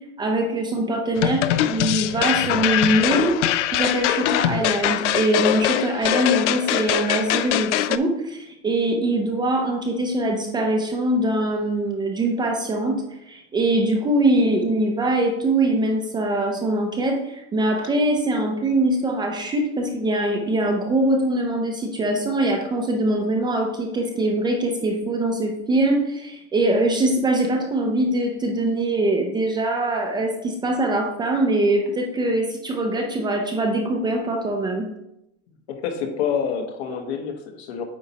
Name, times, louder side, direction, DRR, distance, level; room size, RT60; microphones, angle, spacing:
voice 1, 0.2-3.3 3.7-34.9, right 1 dB, 15° right, 2 dB, 0.4 m, -23 dB
sound 1, 1.2-8.0, left 12 dB, 85° left, 0.5 m, -22 dB
voice 2, 35.7-37.8, left 7 dB, 65° left, 4 dB, 1.3 m, -27 dB
8.7 x 4.4 x 2.8 m, 0.86 s
supercardioid pair, 140°, 35 cm